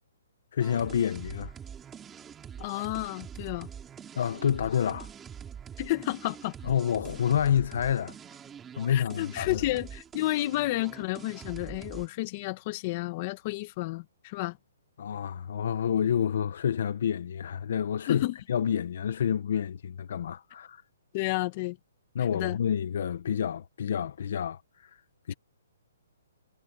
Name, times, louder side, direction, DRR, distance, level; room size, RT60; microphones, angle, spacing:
voice 1, 0.5-1.5 4.2-5.1 6.6-8.1 8.8-9.6 15.0-20.8 22.1-24.9 25.3-25.4, left 8 dB, 55° left, 1.3 m, -28 dB
sound 1, 0.6-12.1, right 8 dB, 10° right, 3.5 m, -44 dB
voice 2, 2.6-3.7 5.8-6.5 8.9-14.6 18.1-18.4 21.1-21.8 22.3-22.6, left 19 dB, 30° left, 1.7 m, -31 dB
hypercardioid pair, 160°, 0 cm